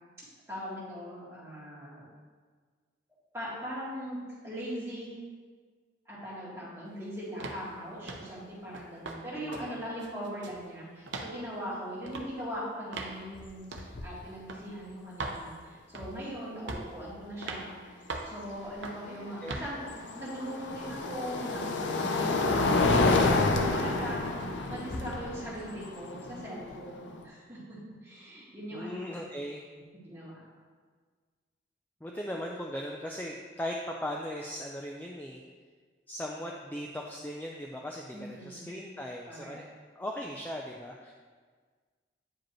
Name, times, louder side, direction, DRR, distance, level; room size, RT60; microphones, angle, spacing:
voice 1, 0.5-2.1 3.3-4.2 4.4-5.1 6.1-17.7 18.2-24.3 24.7-27.6 28.0-29.2 30.0-30.3 38.1-38.7 39.2-39.7, equal, 15° right, -8 dB, 1.9 m, -40 dB
sound 1, 7.4-7.6 8.1-8.3 8.7-9.2 9.5-9.7 10.0-10.6 11.1-11.3 12.1-12.3 12.9-13.2 13.7-13.9 14.5-14.6 15.2-15.4 15.9-16.2 16.7-17.0 17.4-17.7 18.1-18.4 18.8-19.1 19.5-19.7, right 3 dB, 80° right, 0.7 m, -38 dB
voice 2, 9.3-9.8 19.0-19.6 28.7-29.6 32.0-35.4 36.1-39.7 40.0-41.1, equal, 10° left, -1 dB, 0.3 m, -38 dB
sound 2, 13.3-13.5 13.8-14.2 16.0-16.1 19.1-27.2, left 3 dB, 75° left, 0.6 m, -29 dB
8.8 x 5.0 x 3.1 m, 1.6 s
head